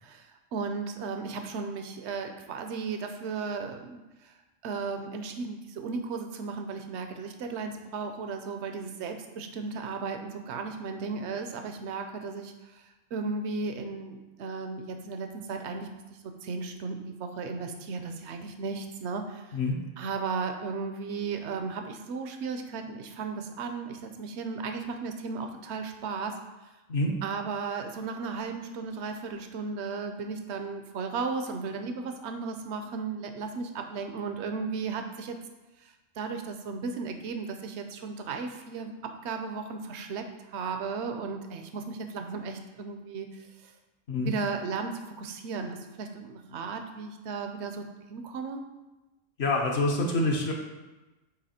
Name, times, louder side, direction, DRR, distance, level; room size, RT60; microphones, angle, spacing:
voice 1, 0.0-4.3 4.6-12.8 13.1-15.9 16.4-19.6 20.0-26.4 27.2-35.4 35.8-40.3 40.5-43.7 44.2-48.6, right 4 dB, 70° right, 6 dB, 0.9 m, -35 dB
voice 2, 49.4-50.5, left 2 dB, 65° left, 0 dB, 1.1 m, -26 dB
8.1 x 3.0 x 4.3 m, 1.1 s
omnidirectional pair, 1.2 m